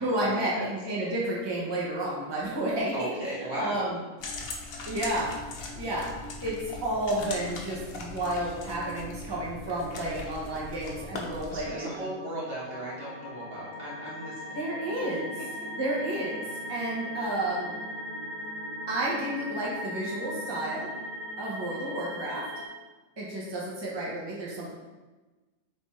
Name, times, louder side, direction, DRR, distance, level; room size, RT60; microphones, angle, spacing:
voice 1, 0.0-3.1 3.6-4.0 4.9-5.3 5.7-6.1 6.4-12.1 14.5-15.3 15.8-17.7 18.9-20.9 21.4-22.5 23.2-24.7, right 1 dB, 20° right, -6 dB, 0.8 m, -31 dB
voice 2, 2.9-3.9 11.5-14.6, right 1 dB, 50° right, -6 dB, 1.1 m, -36 dB
sound 1, 4.2-11.6, left 2 dB, 85° left, 1.1 m, -40 dB
sound 2, 9.5-22.7, left 1 dB, 60° left, 0.5 m, -39 dB
3.4 x 3.3 x 4.2 m, 1.2 s
omnidirectional pair, 1.4 m